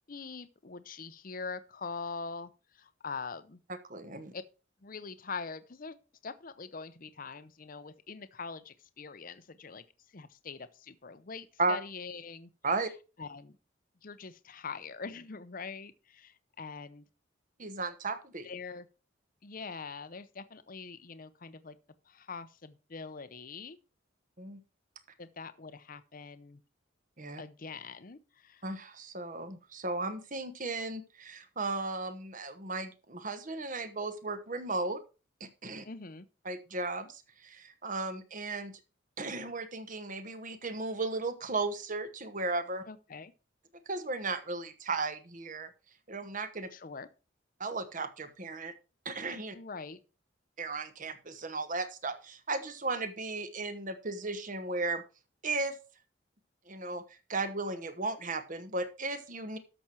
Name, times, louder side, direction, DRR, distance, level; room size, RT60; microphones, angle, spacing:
voice 1, 0.1-3.6 4.3-4.4 4.8-6.0 6.2-9.8 10.1-12.5 13.2-13.6 14.0-17.0 18.4-18.9 19.4-21.8 22.1-23.8 25.2-26.6 27.4-28.6 35.8-36.2 42.9-43.3 46.7-47.1 49.5-50.0, left 4 dB, 45° left, 0.7 m, -43 dB
voice 2, 3.9-4.3 11.6-11.8 12.6-12.9 17.6-18.5 24.4-24.6 27.2-27.4 28.6-35.0 35.4-35.8 36.4-38.8 39.2-42.8 43.9-45.7 46.1-46.7 47.6-48.7 49.0-49.6 50.6-55.0 55.4-55.8 56.7-57.0 57.3-59.6, right 3 dB, 40° right, 1.2 m, -35 dB
13.0 x 6.1 x 4.5 m
head